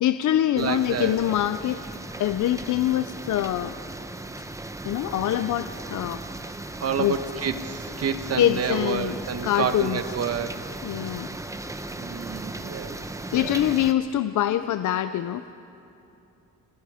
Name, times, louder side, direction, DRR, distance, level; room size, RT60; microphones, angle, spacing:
voice 1, 0.0-1.8 2.2-3.8 4.3-4.4 4.8-6.2 7.0-7.2 8.4-9.2 9.4-10.0 10.8-11.3 13.3-15.5, left 12 dB, 75° left, 11 dB, 0.6 m, -24 dB
voice 2, 0.5-1.2 6.8-10.7 12.0-13.0 13.3-13.8, right 7 dB, 55° right, 9 dB, 1.2 m, -29 dB
sound 1, 0.6-13.9, right 2 dB, 10° right, 0.8 m, -37 dB
30.0 x 20.5 x 5.0 m, 2.9 s
cardioid pair, 130°, 30 cm